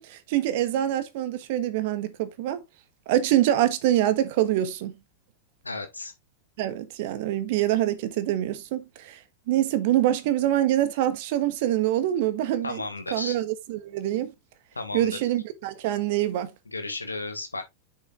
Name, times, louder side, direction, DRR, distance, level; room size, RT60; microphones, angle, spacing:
voice 1, 0.0-2.6 3.1-4.9 6.6-9.2 9.5-12.8 13.1-14.3 14.9-16.5, right 12 dB, 50° right, 1.4 m, -25 dB
voice 2, 5.6-6.1 12.6-13.4 14.8-15.2 16.7-17.6, left 3 dB, 80° left, 1.7 m, -34 dB
8.9 x 7.0 x 2.4 m
figure-of-eight pair, 90°, 0 cm